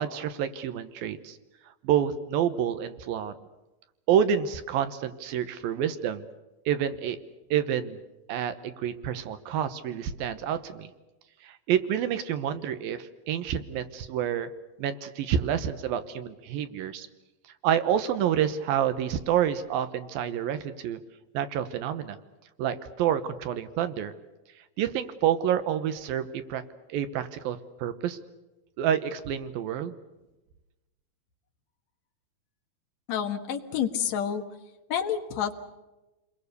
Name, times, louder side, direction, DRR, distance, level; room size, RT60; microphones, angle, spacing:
voice 1, 0.0-1.4 1.8-3.3 4.1-6.2 6.7-7.2 7.5-8.0 8.3-10.9 11.4-14.5 14.8-17.1 17.6-21.0 21.3-22.2 22.6-24.1 24.8-26.6 26.9-28.2 28.8-30.0, right 9 dB, 80° right, 11 dB, 2.8 m, -28 dB
voice 2, 33.1-34.4 34.9-35.6, left 8 dB, 55° left, 5 dB, 2.6 m, -29 dB
29.0 x 22.0 x 6.8 m, 1.0 s
omnidirectional pair, 4.2 m